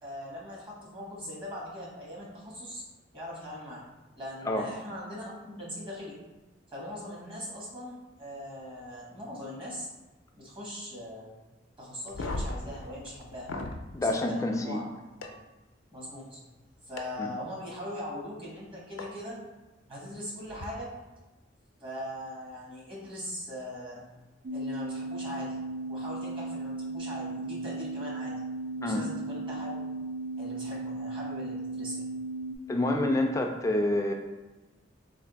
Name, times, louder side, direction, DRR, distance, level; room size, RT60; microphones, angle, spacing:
voice 1, 0.0-2.8 3.1-3.8 4.2-6.2 6.7-9.9 10.3-11.3 11.8-13.5 13.9-14.9 15.9-16.4 16.8-19.4 19.9-20.9 21.8-24.0 24.5-25.6 25.9-28.4 28.8-29.9 30.4-32.0, left 1 dB, 25° right, -5 dB, 1.1 m, -40 dB
sound 1, 12.0-13.8 15.2-15.3 17.0-17.1 19.0-19.1 20.5-20.6, left 2 dB, 80° left, 0.5 m, -36 dB
voice 2, 13.9-14.8 17.2-17.3 28.8-29.0 32.7-34.1, left 1 dB, 15° left, 3 dB, 0.3 m, -27 dB
sound 2, 24.4-32.6, right 2 dB, 75° right, 0.5 m, -36 dB
3.3 x 2.5 x 4.0 m, 1.1 s
head